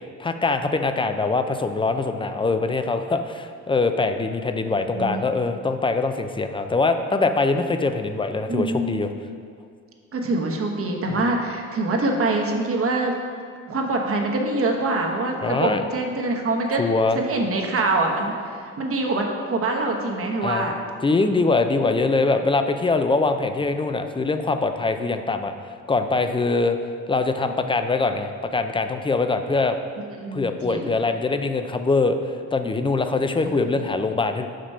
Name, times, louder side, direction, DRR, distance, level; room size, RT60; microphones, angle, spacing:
voice 1, 0.2-9.1 11.1-11.2 15.4-15.8 16.8-17.2 20.4-20.7 21.0-25.5 25.9-26.8 27.1-29.7 30.3-34.5, left 3 dB, 15° left, 8 dB, 0.4 m, -23 dB
voice 2, 4.9-5.2 8.5-8.9 10.1-13.1 13.7-16.8 17.1-18.3 18.8-20.7 30.2-30.9 33.4-33.7, right 2 dB, 45° right, 2 dB, 1.1 m, -24 dB
5.8 x 5.1 x 5.5 m, 2.2 s
cardioid pair, 90°, 30 cm